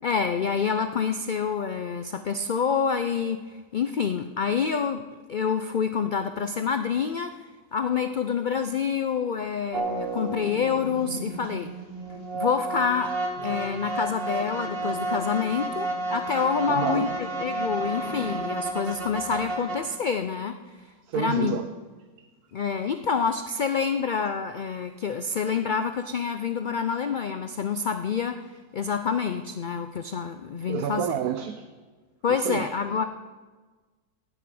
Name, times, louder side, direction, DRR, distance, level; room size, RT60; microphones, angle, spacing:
voice 1, 0.0-5.0 5.3-7.3 7.7-11.7 12.3-13.1 13.4-20.6 21.1-21.6 22.5-31.1 32.2-33.0, left 6 dB, 90° left, 8 dB, 0.4 m, -27 dB
sound 1, 9.7-19.8, right 2 dB, 40° right, 1.6 m, -31 dB
voice 2, 16.7-17.1 21.1-21.7 30.7-31.6 32.3-32.6, right 10 dB, 80° right, 8 dB, 1.2 m, -29 dB
14.5 x 6.5 x 9.3 m, 1.4 s
omnidirectional pair, 1.6 m